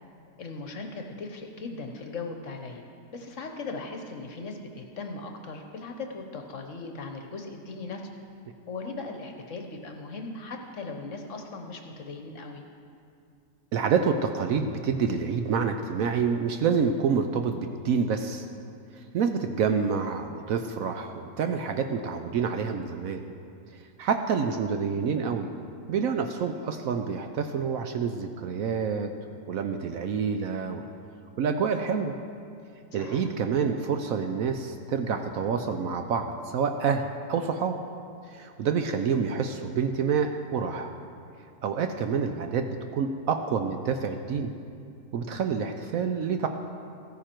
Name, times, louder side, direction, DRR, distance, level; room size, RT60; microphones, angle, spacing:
voice 1, 0.4-2.8 3.1-8.0 8.7-12.6 33.0-33.2, left 3 dB, 55° left, 4 dB, 1.1 m, -38 dB
voice 2, 13.7-18.5 18.9-23.2 23.7-25.5 25.9-29.1 29.5-30.9 31.4-32.1 32.9-37.8 38.3-40.9 41.6-44.5 45.1-46.5, right 6 dB, 65° right, 6 dB, 0.9 m, -28 dB
14.5 x 9.5 x 4.4 m, 2.4 s
omnidirectional pair, 1.7 m